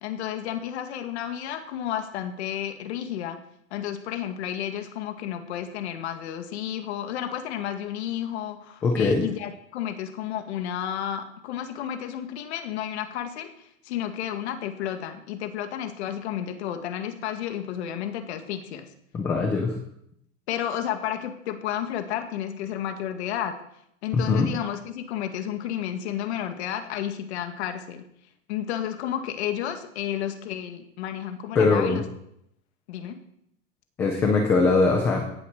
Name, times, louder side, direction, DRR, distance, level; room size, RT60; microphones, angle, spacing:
voice 1, 0.0-3.4 3.7-13.5 13.8-18.9 20.5-23.6 24.0-28.0 28.5-32.0 32.9-33.2, left 10 dB, 55° left, 7 dB, 2.0 m, -32 dB
voice 2, 8.8-9.2 19.1-19.8 24.1-24.5 31.5-32.0 34.0-35.3, left 4 dB, 5° left, 3 dB, 0.4 m, -21 dB
17.0 x 7.4 x 6.5 m, 0.76 s
supercardioid pair, 170°, 41 cm